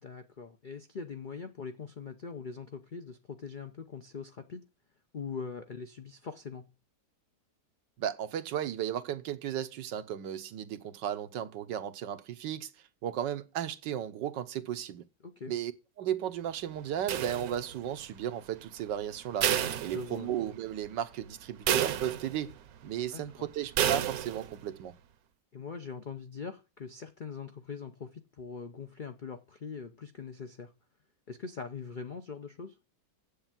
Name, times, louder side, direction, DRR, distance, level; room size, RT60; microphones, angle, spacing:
voice 1, 0.0-4.6 5.1-6.7 15.2-15.5 19.9-20.3 23.1-23.5 25.5-30.7 31.3-32.8, left 5 dB, 90° left, 0.4 m, -42 dB
voice 2, 8.0-12.7 13.0-15.0 15.5-15.7 16.0-19.5 19.8-22.5 22.8-24.9, right 10 dB, 90° right, 1.5 m, -35 dB
sound 1, 17.1-17.9 19.4-20.5 20.9-21.0 21.7-22.6 23.8-24.5, right 10 dB, 65° right, 1.1 m, -30 dB
8.0 x 6.9 x 7.4 m
omnidirectional pair, 1.9 m